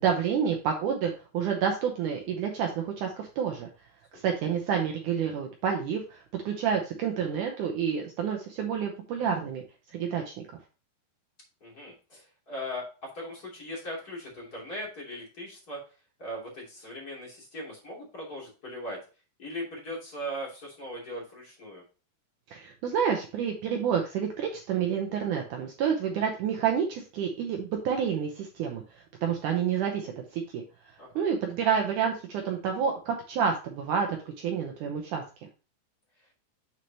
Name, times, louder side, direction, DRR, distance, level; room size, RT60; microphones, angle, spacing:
voice 1, 0.0-3.7 4.1-9.6 9.9-10.2 22.5-28.8 29.2-30.6 31.2-35.2, right 7 dB, 85° right, 2 dB, 1.8 m, -29 dB
voice 2, 11.6-15.8 16.2-19.0 19.4-21.8 31.0-31.2, equal, 25° left, -3 dB, 2.8 m, -39 dB
7.5 x 6.3 x 2.9 m, 0.33 s
omnidirectional pair, 4.8 m